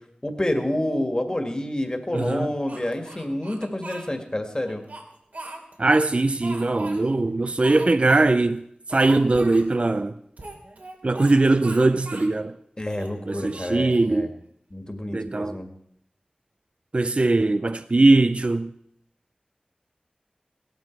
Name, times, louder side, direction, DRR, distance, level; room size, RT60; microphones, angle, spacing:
voice 1, 0.2-4.8 12.8-14.3 14.7-15.7, left 1 dB, 30° left, 2.1 m, -28 dB
voice 2, 2.1-2.5 5.8-8.6 8.9-10.1 11.0-12.5 13.3-14.3 15.1-15.5 16.9-18.7, right 2 dB, 45° right, 0.4 m, -20 dB
Speech, 2.7-4.1 4.6-5.9 6.4-7.0 7.6-8.2 8.5-8.6 8.9-9.7 10.4-11.3 11.6-12.3 12.8-14.2, right 2 dB, 70° right, 2.7 m, -40 dB
17.0 x 12.5 x 4.7 m
wide cardioid pair, 50°, 3 cm